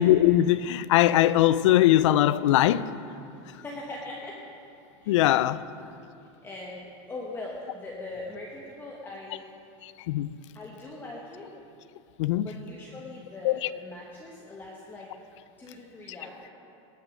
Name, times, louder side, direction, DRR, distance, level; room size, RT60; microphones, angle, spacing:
voice 1, 0.0-2.9 5.1-5.6 9.8-10.3 12.2-12.5 13.4-13.7, left 13 dB, 80° left, 0.4 m, -21 dB
voice 2, 3.6-4.4 5.0-5.3 6.2-9.5 10.5-11.5 12.3-15.1 15.6-16.5, left 2 dB, 15° left, 1.2 m, -41 dB
19.0 x 6.6 x 6.2 m
supercardioid pair, 140°, 15 cm